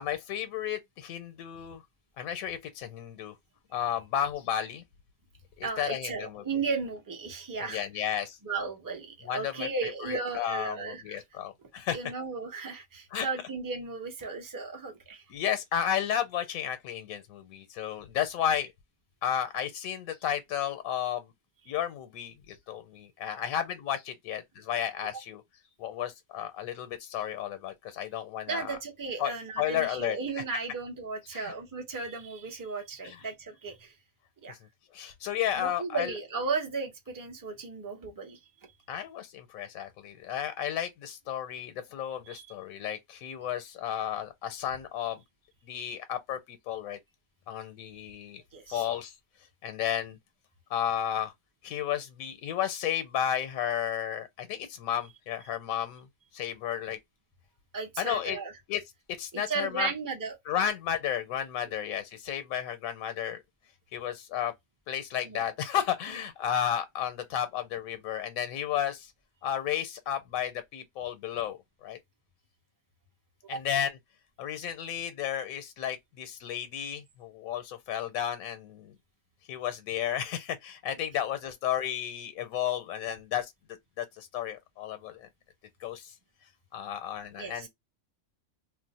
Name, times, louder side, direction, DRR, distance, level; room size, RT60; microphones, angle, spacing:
voice 1, 0.0-1.8 2.2-3.3 3.7-4.8 5.6-6.4 7.6-8.4 9.2-9.7 10.0-12.0 13.1-13.3 15.3-18.7 19.2-21.3 21.7-25.4 25.8-28.8 29.2-30.2 31.3-31.5 33.0-33.2 34.5-34.6 34.9-36.1 38.9-45.2 45.7-47.0 47.5-48.4 48.7-49.1 49.6-50.2 50.7-51.3 51.6-56.1 56.3-57.0 58.0-58.4 58.7-58.8 59.2-59.9 60.5-63.4 63.9-64.5 64.9-69.1 69.4-72.0 73.5-74.0 74.4-78.9 79.5-83.5 84.0-85.3 85.8-86.1 86.7-87.7, left 10 dB, 85° left, 1.0 m, -33 dB
voice 2, 5.6-8.0 8.4-11.2 11.9-15.2 28.5-33.9 34.4-34.5 35.5-38.4 42.3-42.5 48.5-48.9 57.7-58.5 59.3-60.4 65.2-65.5 73.5-73.6 87.4-87.7, right 4 dB, 25° right, 0.4 m, -35 dB
2.4 x 2.0 x 3.9 m
omnidirectional pair, 1.4 m